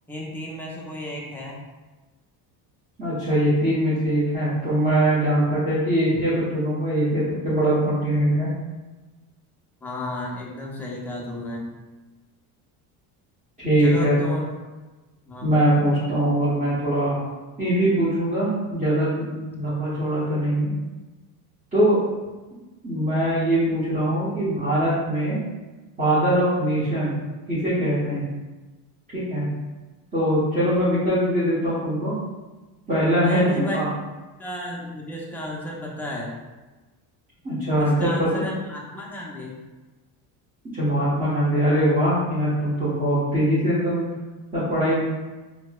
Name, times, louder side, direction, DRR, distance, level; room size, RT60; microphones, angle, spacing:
voice 1, 0.1-1.6 9.8-11.6 13.8-14.5 15.3-15.5 19.6-19.9 33.1-33.8 34.4-36.3 37.8-39.5, left 1 dB, 5° left, -4 dB, 0.5 m, -33 dB
voice 2, 3.0-8.5 13.6-14.1 15.4-17.2 17.6-20.7 21.7-22.0 22.8-25.4 26.0-27.2 27.5-28.3 29.1-29.5 30.1-32.1 32.9-33.9 37.4-38.4 40.7-44.1 44.5-45.0, right 1 dB, 20° right, -12 dB, 1.1 m, -22 dB
4.4 x 2.1 x 2.3 m, 1.2 s
cardioid pair, 120°, 44 cm